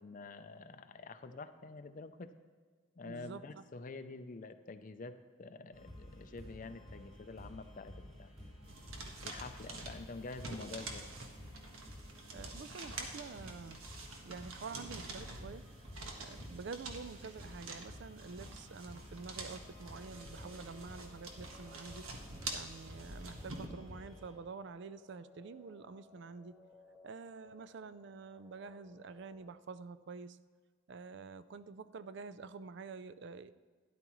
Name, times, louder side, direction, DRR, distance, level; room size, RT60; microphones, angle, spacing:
voice 1, 0.0-2.3 3.0-8.3 9.2-11.1, left 3 dB, 40° left, 10 dB, 0.4 m, -47 dB
voice 2, 3.0-3.7 12.3-13.8 14.2-15.6 16.2-22.0 22.5-26.5 27.0-30.4 30.9-33.5, right 4 dB, 55° right, 14 dB, 0.4 m, -48 dB
sound 1, 5.7-24.3, left 1 dB, 30° right, 3.6 m, -53 dB
sound 2, 8.6-23.7, right 3 dB, 80° right, 1.4 m, -47 dB
sound 3, 19.4-29.5, left 3 dB, 10° right, 1.0 m, -62 dB
12.5 x 11.0 x 3.1 m, 1.6 s
head